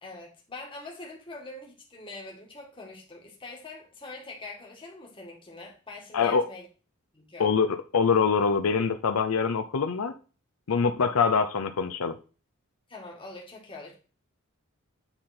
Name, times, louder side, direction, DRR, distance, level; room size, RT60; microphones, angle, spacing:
voice 1, 0.0-6.7 7.1-7.5 12.9-13.9, left 2 dB, 25° left, -1 dB, 2.0 m, -43 dB
voice 2, 6.1-6.4 7.4-10.1 10.7-12.2, left 5 dB, 85° left, 8 dB, 0.6 m, -24 dB
9.0 x 3.8 x 4.3 m, 0.35 s
head